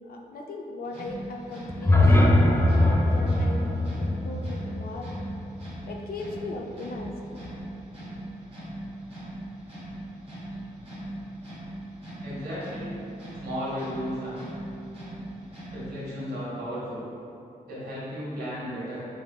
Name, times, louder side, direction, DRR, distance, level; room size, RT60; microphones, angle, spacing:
voice 1, 0.1-5.1 5.9-7.2, left 2 dB, 70° left, 1 dB, 0.5 m, -38 dB
sound 1, 0.8-16.1, right 1 dB, 35° right, 1.5 m, -40 dB
sound 2, 1.7-5.8, left 1 dB, 15° left, 0.4 m, -22 dB
voice 2, 12.2-12.9 13.4-14.5 15.7-17.0 17.6-19.0, equal, 90° right, -8 dB, 1.5 m, -34 dB
5.2 x 3.3 x 2.3 m, 2.7 s
cardioid pair, 90°, 16 cm